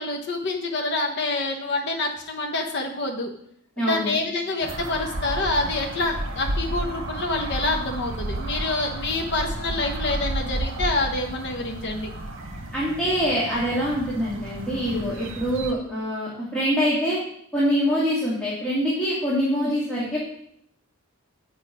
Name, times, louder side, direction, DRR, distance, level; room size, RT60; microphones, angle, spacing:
voice 1, 0.0-3.3 3.8-12.1, left 2 dB, 55° left, 2 dB, 0.9 m, -27 dB
voice 2, 3.8-4.2 12.7-17.2 17.5-20.2, equal, 5° left, -8 dB, 2.0 m, -24 dB
sound 1, 4.6-15.7, right 1 dB, 65° right, 1.1 m, -32 dB
8.6 x 5.2 x 4.9 m, 0.71 s
head